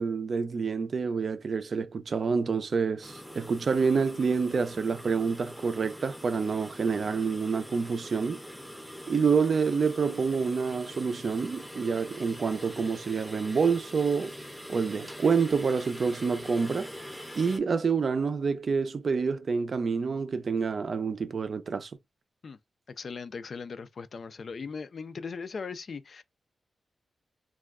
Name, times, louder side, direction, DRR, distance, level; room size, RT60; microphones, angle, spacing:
voice 1, 0.0-8.4 9.1-14.3 14.7-16.9 17.4-21.9, right 5 dB, 55° right, 0.4 m, -27 dB
sound 1, 3.0-17.6, equal, ahead, 0.6 m, -43 dB
voice 2, 23.0-26.2, left 5 dB, 55° left, 0.3 m, -39 dB
2.3 x 2.1 x 3.4 m
wide cardioid pair, 110°, 0 cm